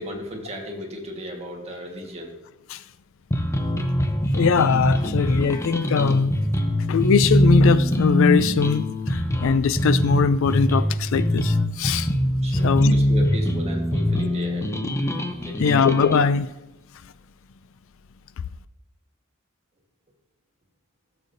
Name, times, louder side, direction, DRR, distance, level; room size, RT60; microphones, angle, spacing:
voice 1, 0.0-2.4 12.4-14.7 15.4-15.7, equal, 30° right, 1.4 m, -35 dB
sound 1, 3.3-16.3, left 1 dB, 15° left, 0.6 m, -23 dB
voice 2, 4.3-6.3 6.9-12.1 12.6-12.9 15.6-16.5, left 5 dB, 65° left, 0.4 m, -21 dB
14.5 x 6.9 x 2.6 m
head